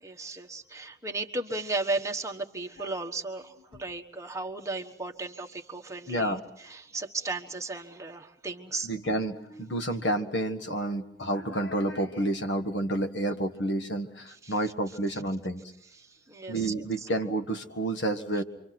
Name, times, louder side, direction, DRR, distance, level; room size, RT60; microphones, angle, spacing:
voice 1, 0.0-8.9 14.3-14.6 15.1-15.2 15.9-17.1 18.4-18.5, right 3 dB, 15° right, 3 dB, 1.3 m, -35 dB
voice 2, 6.1-6.4 8.8-15.6 16.5-18.4, right 1 dB, 75° left, 7 dB, 1.6 m, -30 dB
28.0 x 24.5 x 6.0 m, 0.80 s
head